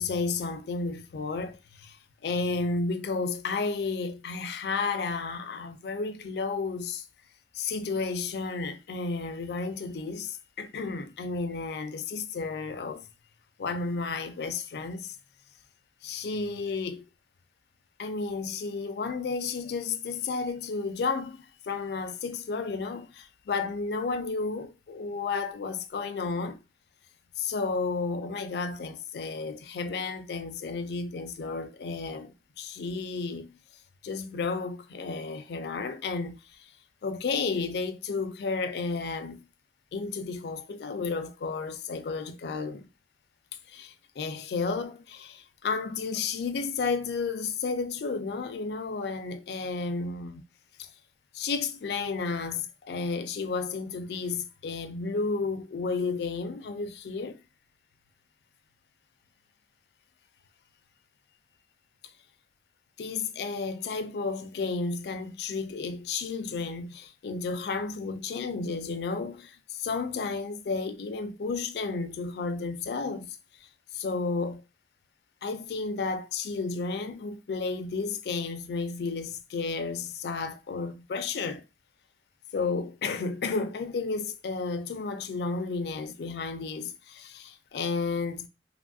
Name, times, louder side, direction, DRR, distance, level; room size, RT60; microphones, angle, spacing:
voice 1, 0.0-2.0 2.2-7.0 7.5-13.0 13.6-15.2 16.0-17.0 18.0-26.6 27.4-33.6 34.0-36.4 37.0-39.5 39.9-42.9 43.7-50.4 51.3-57.4 63.0-73.4 73.9-74.6 75.4-81.6 82.5-88.5, left 4 dB, 65° left, 0.3 m, -32 dB
2.9 x 2.3 x 2.5 m
head